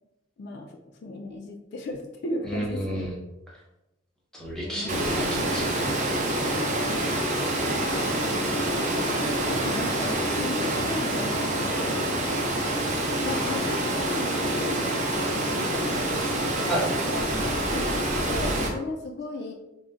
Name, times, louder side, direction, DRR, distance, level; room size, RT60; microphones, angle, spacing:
voice 1, 0.4-3.1 4.6-5.1 7.6-8.8 9.5-12.0 13.2-15.1 15.3-16.6 17.0-19.5, left 2 dB, 55° left, 2 dB, 0.3 m, -36 dB
voice 2, 2.4-3.2 4.3-6.0 16.7-16.9 17.3-17.5, equal, 5° left, -4 dB, 0.7 m, -31 dB
Water, 4.9-18.7, right 1 dB, 40° right, 0.5 m, -26 dB
3.7 x 2.0 x 2.4 m, 0.95 s
head